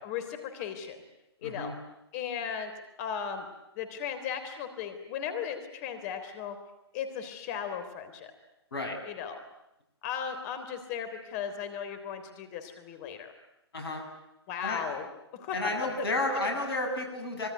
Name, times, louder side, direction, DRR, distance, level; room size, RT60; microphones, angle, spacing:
voice 1, 0.0-1.0 1.4-1.7 2.1-2.7 3.0-3.5 3.8-6.6 6.9-8.3 9.1-9.4 10.0-13.3 14.5-15.1 15.3-15.7, left 8 dB, 35° left, 8 dB, 3.5 m, -36 dB
voice 2, 1.4-1.7 8.7-9.0 13.7-14.1 14.6-14.8 15.5-17.5, left 2 dB, 65° left, 3 dB, 7.7 m, -31 dB
26.0 x 23.0 x 9.5 m, 0.88 s
figure-of-eight pair, 125°, 14 cm